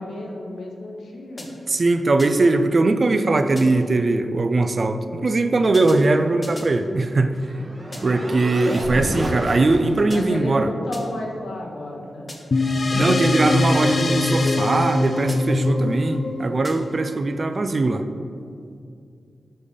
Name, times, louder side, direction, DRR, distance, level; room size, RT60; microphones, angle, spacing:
voice 1, 0.0-1.5 8.1-8.2 10.1-12.3, left 1 dB, 85° left, 0 dB, 0.9 m, -32 dB
sound 1, 1.4-1.8 2.2-2.6 3.6-4.0 5.7-6.8 7.9-8.3 10.1-10.5 10.9-11.3 12.3-12.7 14.5-14.9 15.3-15.7 16.6-17.1, left 1 dB, 25° left, 0.8 m, -41 dB
voice 2, 1.7-7.4 8.0-10.7 12.9-18.0, right 2 dB, 45° right, 8 dB, 0.3 m, -20 dB
sound 2, 6.6-10.2, right 1 dB, 30° right, 1.0 m, -31 dB
sound 3, 12.5-17.3, left 2 dB, 45° left, 0.3 m, -22 dB
6.5 x 3.4 x 5.4 m, 2.4 s
wide cardioid pair, 95°, 0 cm